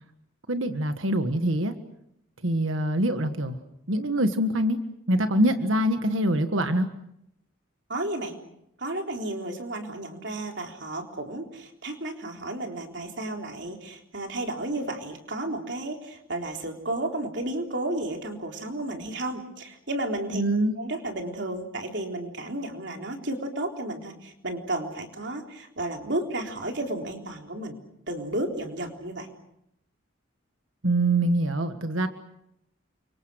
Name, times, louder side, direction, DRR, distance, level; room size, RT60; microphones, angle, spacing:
voice 1, 0.5-1.7 2.4-3.6 3.9-4.8 5.1-6.9 20.3-20.8 30.8-32.1, right 1 dB, 80° right, 8 dB, 1.6 m, -24 dB
voice 2, 7.9-8.4 8.8-20.4 20.8-27.8 28.1-29.3, right 1 dB, 60° right, 3 dB, 3.8 m, -32 dB
29.5 x 25.0 x 6.4 m, 0.79 s
head